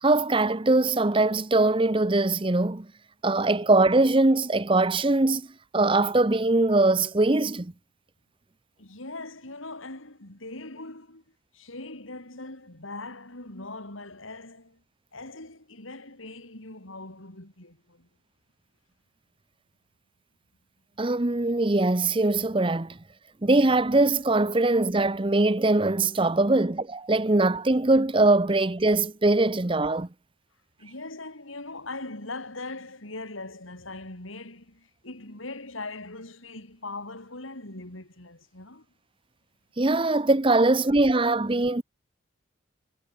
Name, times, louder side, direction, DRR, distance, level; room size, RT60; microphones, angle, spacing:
voice 1, 0.0-2.9 3.2-5.4 5.7-7.7 21.0-23.0 23.4-30.1 39.8-41.8, right 2 dB, 25° right, 0.8 m, -22 dB
voice 2, 8.8-11.2 11.5-14.8 15.1-18.1 30.8-38.8, left 2 dB, 85° left, 5.2 m, -40 dB
head